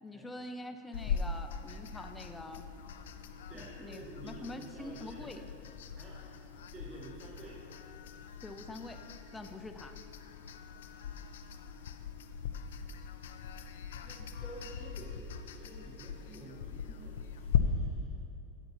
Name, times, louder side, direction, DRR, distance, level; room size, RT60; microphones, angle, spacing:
voice 1, 0.0-2.7 3.5-5.5 8.4-9.9, left 2 dB, 10° left, 6 dB, 0.5 m, -45 dB
sound 1, 0.9-17.6, left 7 dB, 90° left, 0.4 m, -40 dB
voice 2, 3.5-5.3 6.0-6.2 6.7-7.6 9.4-9.6 13.4-13.7 14.0-18.1, right 2 dB, 35° right, -6 dB, 2.2 m, -50 dB
12.5 x 6.8 x 3.0 m, 2.7 s
supercardioid pair, 130°, 0 cm